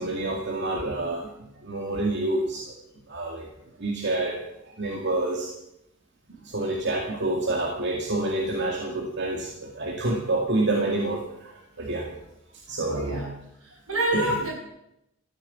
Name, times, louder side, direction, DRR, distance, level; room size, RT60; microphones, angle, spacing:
voice 1, 0.0-2.6 3.1-3.5 3.8-4.3 4.6-5.5 6.4-11.5 11.8-12.1 12.7-13.3 14.1-14.3, right 2 dB, 50° right, -1 dB, 2.1 m, -28 dB
voice 2, 12.9-13.3 13.6-14.5, right 1 dB, 75° right, -3 dB, 8.0 m, -27 dB
14.0 x 9.4 x 8.5 m, 0.84 s
head